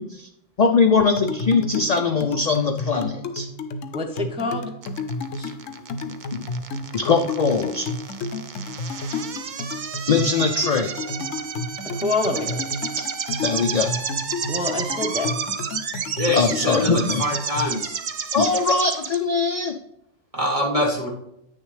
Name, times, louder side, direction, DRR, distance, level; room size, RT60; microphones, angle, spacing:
voice 1, 0.6-3.5 6.9-7.9 10.1-10.9 12.9-13.0 13.4-13.9 16.3-17.3 18.3-19.7, left 4 dB, 50° left, 4 dB, 0.5 m, -21 dB
sound 1, 1.2-17.7, left 3 dB, 85° left, 1.0 m, -32 dB
voice 2, 3.9-4.6 11.2-11.3 11.9-12.6 14.5-15.3, left 2 dB, 5° right, 2 dB, 0.6 m, -26 dB
sound 2, 4.8-19.1, right 7 dB, 50° right, 0.6 m, -31 dB
voice 3, 16.2-16.9 17.2-18.0 20.3-21.1, left 1 dB, 30° right, -1 dB, 1.2 m, -24 dB
9.1 x 6.5 x 3.2 m, 0.80 s
omnidirectional pair, 1.3 m